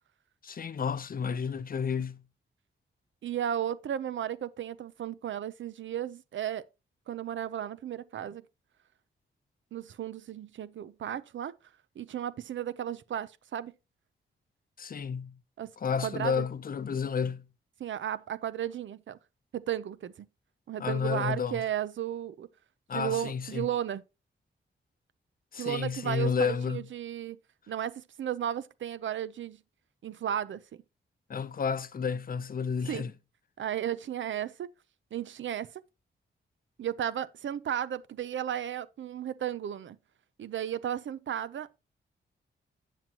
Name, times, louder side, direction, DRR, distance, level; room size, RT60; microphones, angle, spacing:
voice 1, 0.4-2.2 14.8-15.4 15.8-17.5 20.8-21.6 22.9-23.7 25.5-26.9 31.3-33.1, left 6 dB, 45° left, 0.7 m, -31 dB
voice 2, 3.2-6.6 7.1-8.4 9.7-11.5 12.0-13.7 15.6-15.7 16.0-16.5 17.8-19.2 19.5-20.3 20.7-22.5 22.9-24.0 25.6-27.4 27.7-29.6 30.0-30.6 32.9-33.1 33.6-34.7 35.1-35.8 36.8-40.0 40.4-41.8, right 10 dB, 70° right, 0.6 m, -34 dB
9.1 x 7.3 x 2.9 m
wide cardioid pair, 100°, 20 cm